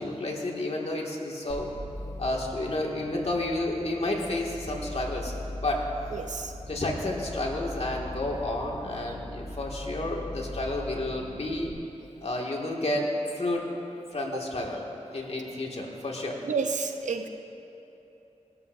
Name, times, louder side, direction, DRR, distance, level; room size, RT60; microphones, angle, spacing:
voice 1, 0.0-1.7 2.2-5.3 5.6-5.8 6.7-11.7 12.2-13.7 14.1-14.8 15.1-16.4, left 1 dB, 60° left, -1 dB, 2.2 m, -31 dB
sound 1, 1.5-11.7, left 1 dB, 5° right, 3.1 m, -40 dB
voice 2, 6.1-6.5 14.3-14.4 16.4-17.3, right 5 dB, 90° right, 6 dB, 0.7 m, -30 dB
20.5 x 12.5 x 2.7 m, 3.0 s
cardioid pair, 40°, 12 cm